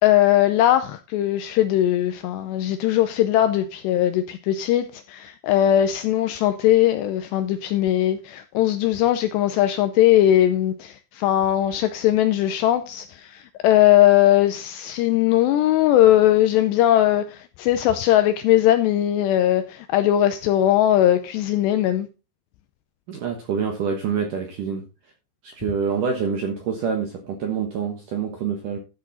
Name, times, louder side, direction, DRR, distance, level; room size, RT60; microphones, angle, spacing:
voice 1, 0.0-22.1, left 12 dB, 85° left, 2.5 m, -19 dB
voice 2, 23.1-24.8 25.4-28.8, right 6 dB, 70° right, 2.0 m, -26 dB
12.5 x 6.3 x 4.1 m
omnidirectional pair, 5.5 m